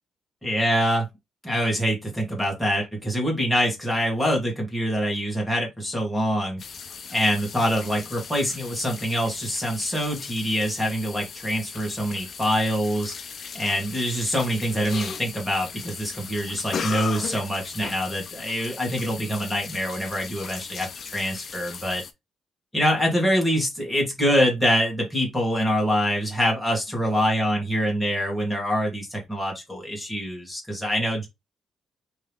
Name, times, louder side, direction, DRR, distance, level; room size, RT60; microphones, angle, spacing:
voice 1, 0.4-1.1 1.4-6.6 7.1-13.1 13.5-22.0 22.7-31.3, equal, ahead, 1.9 m, -25 dB
sound 1, 6.6-22.1, left 6 dB, 50° left, 0.6 m, -38 dB
3.6 x 3.1 x 3.5 m
cardioid pair, 120°, 0 cm